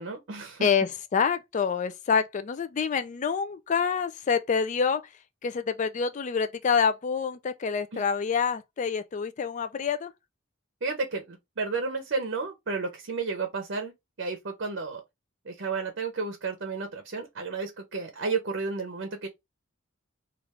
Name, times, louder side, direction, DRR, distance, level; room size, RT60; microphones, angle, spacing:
voice 1, 0.0-0.7 7.9-8.0 10.8-13.9 14.2-15.0 15.4-19.3, right 4 dB, 60° right, 0.7 m, -32 dB
voice 2, 0.6-5.0 5.4-10.1, left 6 dB, 35° left, 0.3 m, -27 dB
3.1 x 2.4 x 3.4 m
head